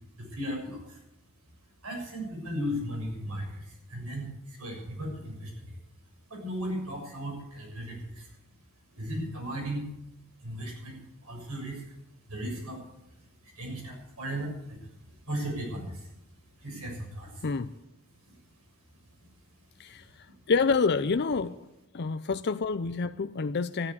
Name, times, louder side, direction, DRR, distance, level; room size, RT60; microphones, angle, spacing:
voice 1, 0.2-1.0 1.8-5.8 6.3-8.3 8.9-9.9 10.4-12.0 12.3-12.8 13.4-14.9 15.3-16.1 16.6-17.5 18.3-18.4 19.2-19.3, equal, 80° right, 0 dB, 6.9 m, -36 dB
voice 2, 17.4-17.7 19.8-20.1 20.5-21.6 21.9-23.9, left 4 dB, 50° left, 11 dB, 0.5 m, -27 dB
13.0 x 11.0 x 8.4 m, 0.87 s
head